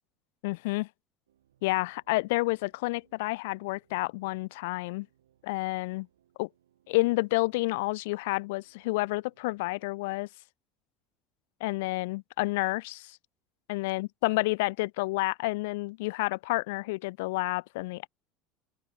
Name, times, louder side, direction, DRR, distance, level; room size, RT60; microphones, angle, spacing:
voice 1, 0.4-0.9 1.6-5.1 5.4-6.1 6.4-6.5 6.9-10.3 11.6-13.2 13.7-18.1, left 22 dB, 75° left, 0.3 m, -30 dB
sound 1, 1.3-10.3, right 11 dB, 90° right, 5.8 m, -70 dB
open air
hypercardioid pair, 85°, 0 cm